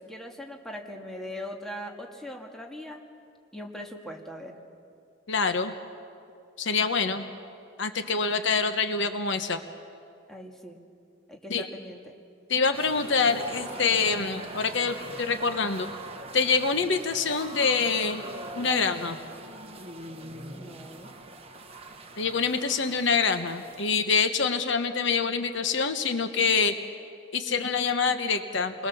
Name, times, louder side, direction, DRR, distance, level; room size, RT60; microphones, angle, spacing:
voice 1, 0.0-3.0 3.5-4.6 10.3-10.8 11.3-12.1 20.5-21.1, left 1 dB, ahead, 1 dB, 2.0 m, -40 dB
voice 2, 5.3-5.7 6.6-7.2 7.8-9.6 11.5-11.7 12.5-15.9 16.3-18.2 18.5-19.2 22.2-26.7 27.3-28.9, left 5 dB, 60° left, 8 dB, 1.1 m, -26 dB
sound 1, 12.7-24.0, right 2 dB, 30° right, 1.4 m, -42 dB
29.5 x 21.5 x 7.1 m, 2.4 s
head